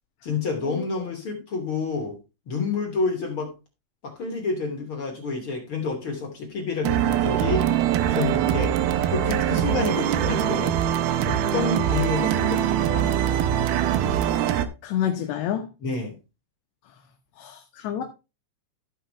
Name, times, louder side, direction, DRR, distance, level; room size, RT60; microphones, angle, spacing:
voice 1, 0.2-2.2 2.5-3.5 4.0-7.7 8.1-8.8 9.1-10.7 11.2-13.1 15.8-16.2, left 4 dB, 35° left, 2.9 m, -29 dB
sound 1, 6.8-14.7, right 10 dB, 85° right, 2.2 m, -23 dB
voice 2, 14.8-15.7 17.4-18.0, left 10 dB, 75° left, 3.2 m, -28 dB
15.5 x 5.8 x 3.3 m
omnidirectional pair, 5.4 m